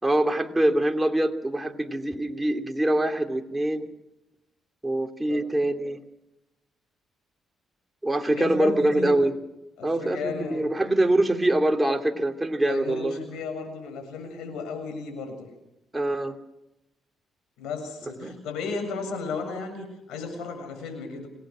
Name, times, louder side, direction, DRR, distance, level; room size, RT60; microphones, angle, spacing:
voice 1, 0.0-3.9 4.8-6.0 8.0-9.3 9.8-13.2 15.9-16.3 18.2-18.3, right 1 dB, 10° right, 4 dB, 2.7 m, -24 dB
voice 2, 8.3-9.2 9.8-10.7 12.6-15.5 17.6-21.3, left 4 dB, 90° left, 7 dB, 7.1 m, -34 dB
27.0 x 18.5 x 6.3 m, 0.91 s
cardioid pair, 90°, 0 cm